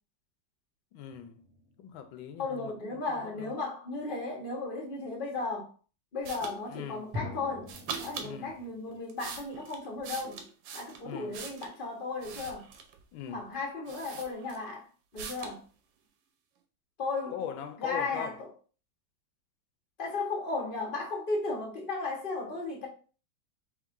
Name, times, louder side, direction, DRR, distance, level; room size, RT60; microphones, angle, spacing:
voice 1, 0.9-1.4 1.8-3.5 6.7-7.0 8.2-8.5 11.0-11.4 13.1-13.4 17.3-18.4, left 9 dB, 85° left, 1.4 m, -41 dB
sound 1, 1.1-2.4 7.1-9.0, left 3 dB, 10° right, 1.6 m, -43 dB
voice 2, 2.4-5.7 6.1-7.7 8.0-10.4 10.7-12.6 13.3-14.9 15.1-15.6 17.0-17.3 17.8-18.5 20.0-22.9, left 3 dB, 30° left, 1.2 m, -35 dB
sound 2, 6.2-6.6 7.6-8.3 8.9-11.8 12.2-13.0 13.5-13.6 13.9-14.7 15.2-15.6, right 6 dB, 80° right, 1.4 m, -42 dB
3.7 x 3.2 x 3.6 m
omnidirectional pair, 2.1 m